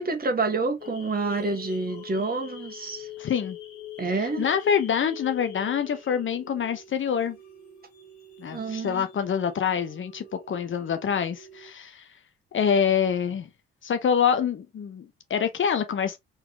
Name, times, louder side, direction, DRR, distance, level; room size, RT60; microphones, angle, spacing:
voice 1, 0.0-3.1 4.0-4.4 8.5-9.0, right 3 dB, 30° right, 1.5 m, -28 dB
sound 1, 0.8-11.7, left 8 dB, 70° left, 1.5 m, -44 dB
voice 2, 3.2-3.6 4.2-7.4 8.4-12.0 12.5-13.5 13.8-16.2, left 7 dB, 40° left, 1.0 m, -26 dB
4.3 x 4.0 x 2.9 m
figure-of-eight pair, 45°, 30 cm